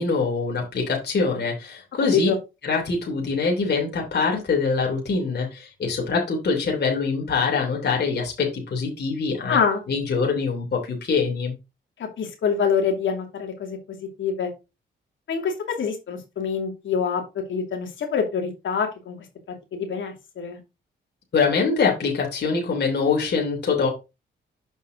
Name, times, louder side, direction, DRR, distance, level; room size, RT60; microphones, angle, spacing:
voice 1, 0.0-2.3 2.6-9.6 9.9-11.5 21.3-23.9, left 4 dB, 55° left, -1 dB, 3.0 m, -24 dB
voice 2, 9.5-9.8 12.0-14.5 15.3-19.2 19.7-20.6, left 6 dB, 75° left, 3 dB, 2.7 m, -25 dB
7.3 x 5.5 x 3.9 m, 0.27 s
cardioid pair, 75°, 20 cm